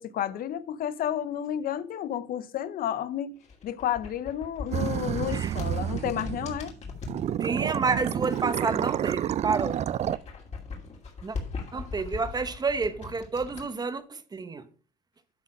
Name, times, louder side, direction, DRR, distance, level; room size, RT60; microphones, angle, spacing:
voice 1, 0.0-6.7, left 10 dB, 60° left, 0.6 m, -31 dB
sound 1, 3.4-7.2 7.9-9.2 9.5-13.6, left 4 dB, 40° left, 2.7 m, -40 dB
sound 2, 4.7-6.7 7.1-10.2, right 10 dB, 40° right, 0.3 m, -29 dB
voice 2, 7.4-9.9 11.2-11.4 11.7-14.7, right 4 dB, 25° right, 0.8 m, -29 dB
12.0 x 4.0 x 5.1 m
cardioid pair, 110°, 17 cm